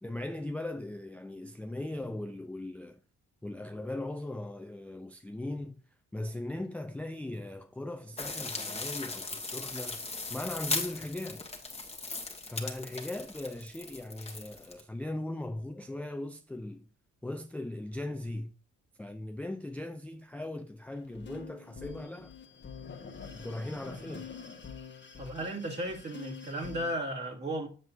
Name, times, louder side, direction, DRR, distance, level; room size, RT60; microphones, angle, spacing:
voice 1, 0.0-3.0 3.4-5.8 6.1-11.5 12.5-16.9 17.2-18.5 19.0-22.3 23.3-24.3, left 1 dB, 5° left, 0.4 m, -39 dB
sound 1, 8.2-14.8, left 3 dB, 20° left, 1.5 m, -38 dB
sound 2, 20.9-27.0, left 6 dB, 40° left, 1.3 m, -46 dB
voice 2, 25.2-27.7, right 1 dB, 35° right, 2.3 m, -35 dB
7.6 x 7.4 x 2.7 m
cardioid pair, 90°, 30 cm